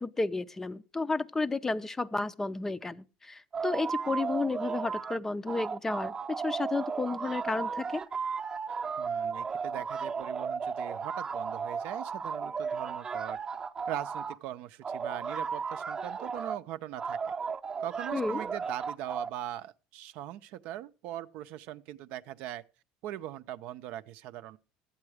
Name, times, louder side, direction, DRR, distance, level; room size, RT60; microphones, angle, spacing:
voice 1, 0.0-8.0 18.1-18.4, left 3 dB, 15° left, 0.5 m, -32 dB
sound 1, 3.5-5.2 5.5-14.4 14.8-16.6 17.0-19.3, right 5 dB, 30° right, 0.7 m, -35 dB
voice 2, 9.0-13.4 13.9-17.3 17.8-22.6 23.0-24.6, right 12 dB, 65° right, 0.5 m, -40 dB
12.0 x 8.7 x 4.9 m
supercardioid pair, 105°, 3 cm